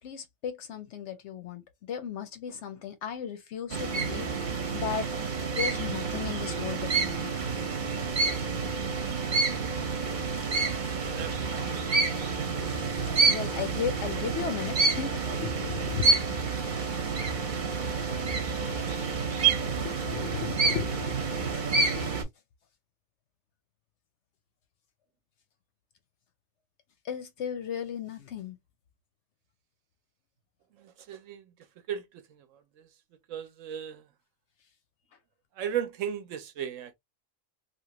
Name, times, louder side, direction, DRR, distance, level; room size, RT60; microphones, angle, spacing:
voice 1, 0.0-5.1 5.5-7.3 13.1-16.1 19.8-21.2 22.0-22.1 27.0-28.6, left 8 dB, 65° left, 0.8 m, -36 dB
sound 1, 3.7-22.2, right 4 dB, 40° right, 0.8 m, -28 dB
voice 2, 11.1-11.7 30.8-31.4 31.9-32.9 33.3-34.0 35.6-36.9, right 9 dB, 70° right, 1.0 m, -36 dB
2.9 x 2.4 x 2.8 m
omnidirectional pair, 1.4 m